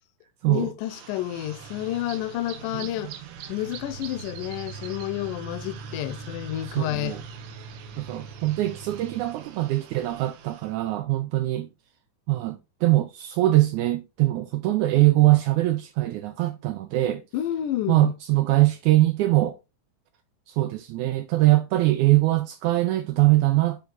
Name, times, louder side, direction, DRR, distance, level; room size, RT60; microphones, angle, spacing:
voice 1, 0.5-3.1 3.5-7.2 17.3-18.1, left 13 dB, 80° left, 2.1 m, -30 dB
sound 1, 0.8-10.7, right 6 dB, 70° right, 2.0 m, -41 dB
voice 2, 6.8-7.2 8.0-11.7 12.3-17.2 17.9-19.6 20.5-23.8, right 17 dB, 90° right, 1.7 m, -22 dB
9.6 x 3.5 x 4.0 m
omnidirectional pair, 4.0 m